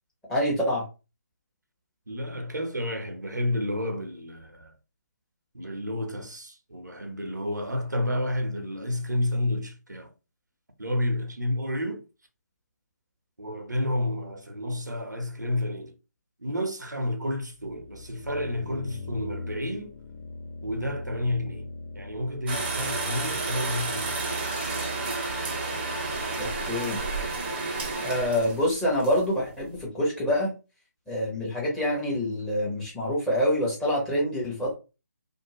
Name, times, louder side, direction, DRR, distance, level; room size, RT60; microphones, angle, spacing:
voice 1, 0.3-0.8 26.4-27.0 28.0-30.5 31.1-34.7, equal, 5° left, 0.9 m, -26 dB
voice 2, 2.1-4.7 5.5-10.1 10.8-12.0 13.4-15.9 16.4-19.9 20.6-21.7 21.9-24.5, left 1 dB, 90° right, 0.8 m, -30 dB
sound 1, 17.6-22.6, left 3 dB, 50° left, 0.5 m, -40 dB
sound 2, 22.5-29.8, right 3 dB, 30° right, 0.7 m, -31 dB
2.6 x 2.2 x 3.0 m
figure-of-eight pair, 145°, 9 cm